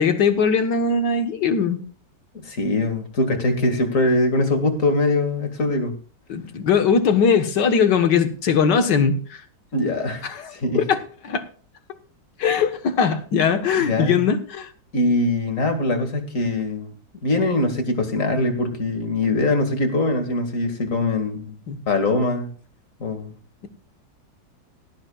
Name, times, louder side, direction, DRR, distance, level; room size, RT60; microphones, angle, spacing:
voice 1, 0.0-1.8 6.3-9.4 10.2-11.0 11.2-11.4 12.4-14.7 21.7-21.8, left 6 dB, 65° left, 8 dB, 1.8 m, -20 dB
voice 2, 2.4-5.9 9.7-10.9 13.8-14.2 14.9-16.9 17.2-21.6 21.9-22.5 23.0-23.3, left 2 dB, 45° left, 6 dB, 2.3 m, -22 dB
18.0 x 13.0 x 2.3 m, 0.43 s
omnidirectional pair, 2.0 m